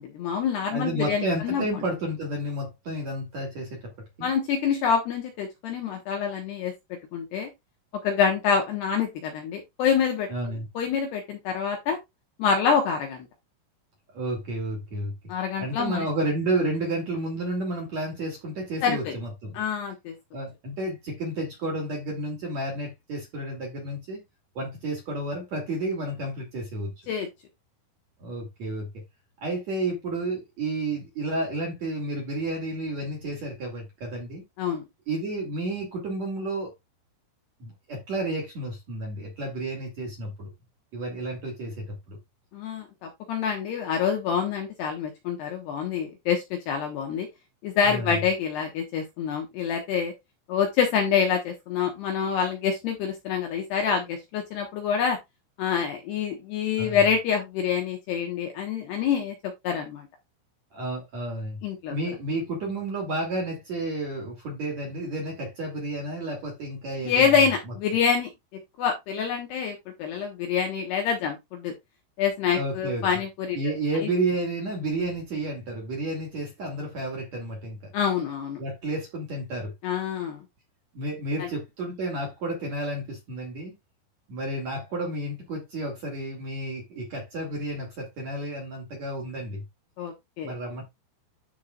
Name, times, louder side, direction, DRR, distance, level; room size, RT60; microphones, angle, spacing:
voice 1, 0.0-1.6 4.2-6.7 7.1-7.5 8.0-10.3 10.7-12.0 12.4-13.3 15.3-16.1 18.8-19.1 19.5-20.1 27.1-27.3 34.6-34.8 42.5-47.3 47.6-50.1 50.5-55.2 55.6-59.4 59.6-60.1 61.6-61.9 67.0-68.3 68.8-71.7 72.2-73.6 74.0-74.1 77.9-78.6 79.8-80.4 81.4-81.5 90.0-90.5, left 7 dB, 70° left, 2.8 m, -26 dB
voice 2, 0.7-3.9 4.2-4.3 10.3-10.7 14.1-15.1 15.6-19.6 20.3-24.2 24.5-26.9 28.2-28.9 29.4-34.4 35.1-36.7 37.6-40.5 40.9-42.2 47.8-48.1 56.8-57.0 60.7-61.6 61.9-67.5 72.5-73.1 73.5-77.9 78.6-79.7 80.9-83.7 84.3-89.6 90.4-90.8, right 1 dB, 45° right, 2.7 m, -31 dB
13.5 x 4.8 x 2.4 m
omnidirectional pair, 6.0 m